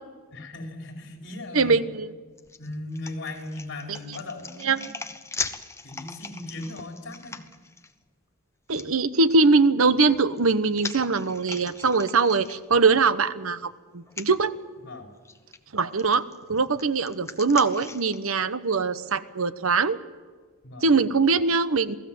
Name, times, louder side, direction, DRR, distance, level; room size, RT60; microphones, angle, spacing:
voice 1, 0.3-1.8 2.6-5.0 5.8-7.4 14.8-15.1 20.6-20.9, left 2 dB, 60° left, 2 dB, 5.0 m, -38 dB
voice 2, 1.5-2.1 4.6-4.9 8.7-14.5 15.7-20.0 20.8-22.0, right 4 dB, 85° right, 13 dB, 1.1 m, -22 dB
sound 1, 2.4-7.9 8.7-8.9 10.0-13.0 13.4-13.5 14.1-14.3 15.2-15.6 16.0-18.2, left 4 dB, 15° left, 1.1 m, -39 dB
28.5 x 18.0 x 7.8 m, 1.4 s
head